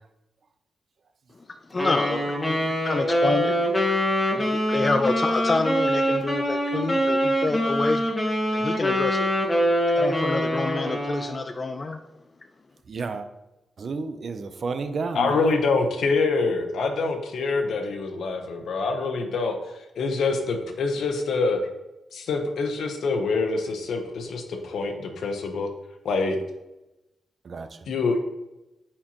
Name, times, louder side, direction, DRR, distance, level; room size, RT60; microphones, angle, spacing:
voice 1, 1.7-3.5 4.3-8.0 8.5-9.3 10.0-12.0, left 3 dB, 25° left, 0.3 m, -27 dB
Wind instrument woodwind instrument, 1.8-11.4, equal, 10° left, 1.4 m, -24 dB
voice 2, 12.9-13.3 13.8-15.5 27.4-27.7, right 4 dB, 45° right, 0.5 m, -31 dB
voice 3, 15.1-19.6 20.0-21.6 22.1-25.7 26.0-26.4 27.9-28.2, left 4 dB, 75° left, 1.0 m, -25 dB
8.8 x 4.4 x 3.0 m
wide cardioid pair, 135°, 0 cm